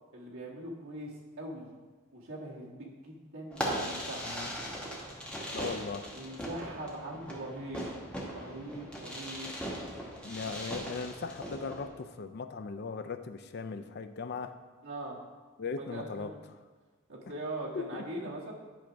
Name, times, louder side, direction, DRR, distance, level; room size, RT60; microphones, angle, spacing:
voice 1, 0.1-1.7 2.1-4.4 6.1-7.9 8.3-9.5 14.8-15.2 15.7-16.4 17.1-18.5, right 1 dB, 65° right, -4 dB, 1.7 m, -41 dB
Fireworks, 3.5-11.9, equal, 5° left, 1.0 m, -39 dB
voice 2, 5.5-6.1 10.2-14.5 15.6-16.3 17.8-18.0, left 5 dB, 50° left, 10 dB, 0.4 m, -38 dB
10.5 x 3.5 x 5.0 m, 1.3 s
head